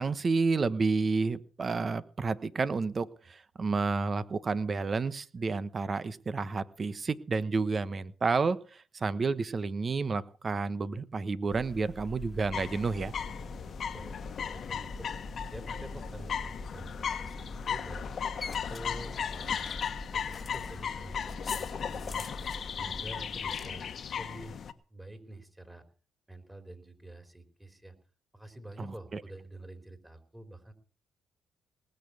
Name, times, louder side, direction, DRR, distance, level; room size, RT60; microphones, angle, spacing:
voice 1, 0.0-13.1 28.8-29.2, right 4 dB, 40° right, 15 dB, 1.2 m, -30 dB
sound 1, 11.5-23.7, left 2 dB, 40° left, 1.6 m, -44 dB
sound 2, 12.5-24.7, left 7 dB, 55° left, 1.3 m, -36 dB
voice 2, 13.6-14.2 14.4-15.1 15.5-18.1 18.5-19.7 20.0-22.3 22.7-23.9 24.2-24.6 24.9-25.8 26.3-27.9 28.3-30.7, right 1 dB, 15° right, 6 dB, 3.7 m, -47 dB
19.5 x 6.8 x 8.3 m, 0.40 s
supercardioid pair, 60°, 0 cm